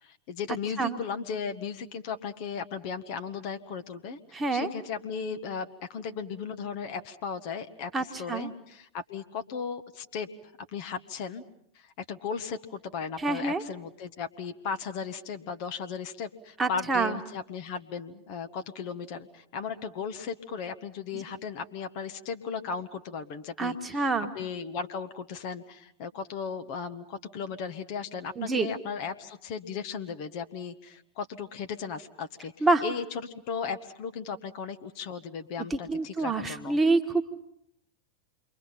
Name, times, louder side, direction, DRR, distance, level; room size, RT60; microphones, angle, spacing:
voice 1, 0.0-10.3 10.7-11.4 11.7-24.1 24.3-36.8, left 6 dB, 45° left, 9 dB, 1.3 m, -36 dB
voice 2, 4.3-4.7 7.9-8.5 13.2-13.6 16.6-17.2 21.1-21.2 23.6-24.3 28.4-28.7 32.6-32.8 35.7-37.2, right 3 dB, 15° right, 5 dB, 1.7 m, -27 dB
28.5 x 23.0 x 5.8 m, 0.74 s
figure-of-eight pair, 90°, 0 cm